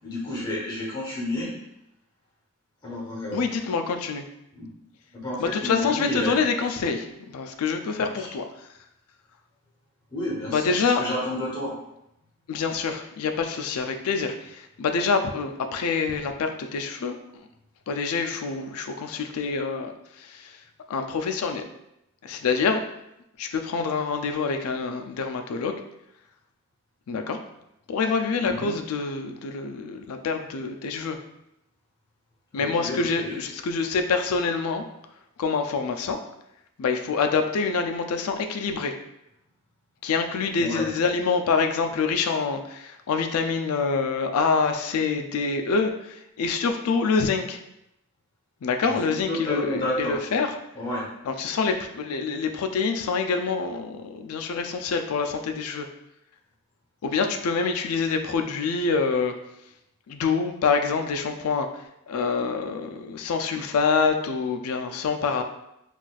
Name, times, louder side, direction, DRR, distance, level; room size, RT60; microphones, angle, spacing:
voice 1, 0.0-1.5 2.8-3.4 4.5-4.7 5.1-6.4 8.0-8.3 10.1-11.7 28.4-28.8 32.5-33.3 40.6-40.9 48.8-48.9 49.3-50.2 50.7-51.0, left 1 dB, 20° left, -5 dB, 1.0 m, -31 dB
voice 2, 3.3-4.2 5.4-7.1 7.3-8.4 10.5-11.0 12.5-17.5 17.9-19.9 20.2-20.6 20.9-21.6 22.2-22.8 23.4-25.8 27.1-27.4 27.9-31.2 32.5-34.8 35.4-36.2 36.8-38.9 40.0-47.6 48.6-50.5 51.3-55.9 57.0-59.3 60.1-61.7 62.1-65.4, left 5 dB, 75° left, 5 dB, 0.4 m, -26 dB
3.9 x 2.4 x 2.3 m, 0.83 s
head